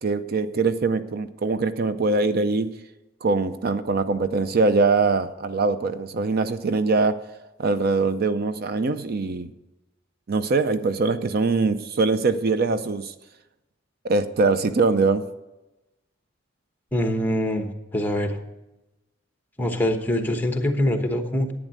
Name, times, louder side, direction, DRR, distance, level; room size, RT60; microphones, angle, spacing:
voice 1, 0.0-2.7 3.2-7.2 7.6-9.5 10.3-13.1 14.0-15.2, right 3 dB, 50° right, 11 dB, 0.5 m, -22 dB
voice 2, 16.9-18.4 19.6-21.5, left 1 dB, 10° left, 5 dB, 1.1 m, -24 dB
10.5 x 9.1 x 6.6 m, 0.99 s
head